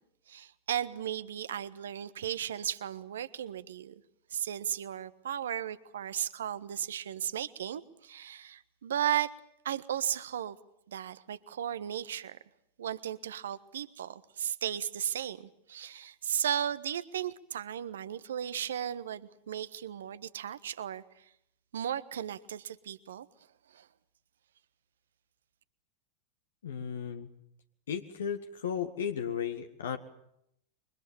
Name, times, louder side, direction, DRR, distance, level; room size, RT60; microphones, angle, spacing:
voice 1, 0.3-3.9 4.3-9.3 9.6-10.6 10.9-12.4 12.8-21.2 21.7-23.3 23.7-23.9, right 10 dB, 65° right, 14 dB, 1.4 m, -35 dB
voice 2, 26.6-27.3 27.9-30.0, left 8 dB, 65° left, 7 dB, 1.6 m, -35 dB
28.0 x 24.0 x 7.2 m, 0.76 s
figure-of-eight pair, 90°, 0 cm